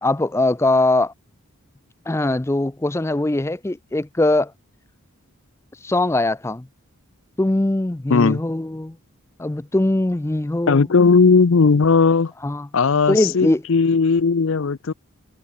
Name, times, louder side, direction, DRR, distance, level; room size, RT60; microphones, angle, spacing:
voice 1, 0.0-1.1 2.1-4.5 5.8-6.7 7.4-9.0 9.4-10.9 12.4-12.7 13.1-13.6, left 2 dB, 10° left, 0.4 m, -21 dB
voice 2, 8.1-8.4 10.7-12.3 12.7-14.9, left 4 dB, 60° left, 0.5 m, -16 dB
head